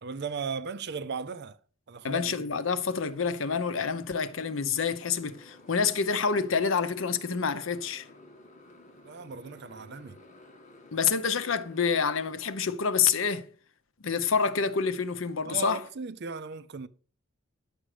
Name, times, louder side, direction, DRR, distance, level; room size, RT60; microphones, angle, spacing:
voice 1, 0.0-1.6 1.9-2.5 9.0-10.2 15.4-16.9, right 5 dB, 55° right, 0.6 m, -37 dB
voice 2, 2.0-8.1 10.9-13.5 14.0-15.8, left 6 dB, 70° left, 0.7 m, -27 dB
Motorcycle, 2.6-12.3, left 2 dB, 40° left, 1.6 m, -54 dB
9.9 x 6.2 x 4.9 m
head